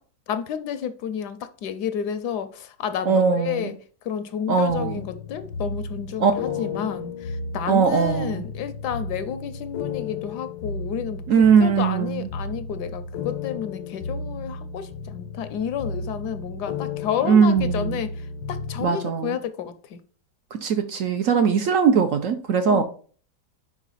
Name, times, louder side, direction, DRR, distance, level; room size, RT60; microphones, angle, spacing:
voice 1, 0.3-3.7 4.0-11.2 11.6-20.0 22.7-22.8, left 8 dB, 75° left, 1.1 m, -31 dB
voice 2, 3.1-3.7 4.5-5.0 6.2-6.9 7.7-8.4 11.3-12.3 17.2-18.0 18.8-19.4 20.5-22.8, right 6 dB, 75° right, 0.7 m, -20 dB
sound 1, 4.7-18.8, left 4 dB, 90° left, 1.4 m, -33 dB
5.3 x 4.9 x 3.9 m
omnidirectional pair, 1.9 m